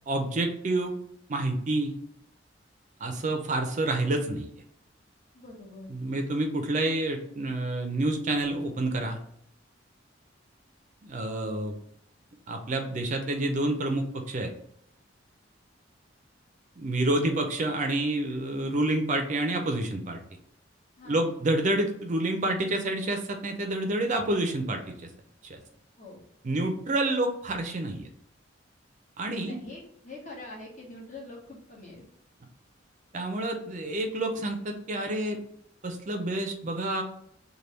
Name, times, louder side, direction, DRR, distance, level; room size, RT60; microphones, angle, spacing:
voice 1, 0.1-1.0 1.3-1.9 3.0-4.5 5.9-9.2 11.0-11.8 12.5-14.5 16.8-20.2 21.1-25.1 25.5-25.6 26.4-28.1 29.2-29.6 33.1-35.4 35.8-37.0, right 2 dB, 40° right, 5 dB, 0.5 m, -28 dB
voice 2, 5.3-5.9 21.0-21.3 26.0-26.2 29.4-32.1, left 2 dB, 40° left, -4 dB, 1.3 m, -44 dB
3.3 x 2.2 x 4.2 m, 0.69 s
head